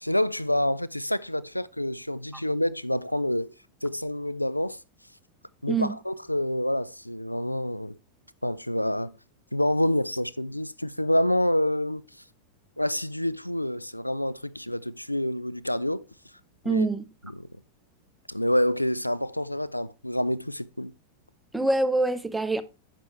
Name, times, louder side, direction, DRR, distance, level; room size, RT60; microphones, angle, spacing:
voice 1, 0.0-3.5 3.8-4.8 5.6-8.0 8.4-9.1 9.5-12.0 12.8-16.0 16.6-16.9 17.3-17.5 18.3-20.9, left 1 dB, 90° left, 0.3 m, -27 dB
voice 2, 16.6-17.1 21.5-22.6, right 2 dB, 5° right, 0.6 m, -25 dB
9.3 x 5.9 x 3.1 m
figure-of-eight pair, 90°, 0 cm